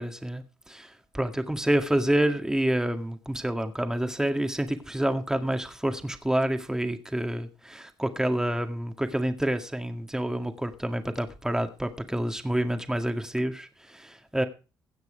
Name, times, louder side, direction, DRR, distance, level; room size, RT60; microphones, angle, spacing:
voice 1, 0.0-14.4, right 1 dB, 5° right, 2.0 m, -28 dB
16.5 x 6.1 x 5.1 m
supercardioid pair, 60°, 8 cm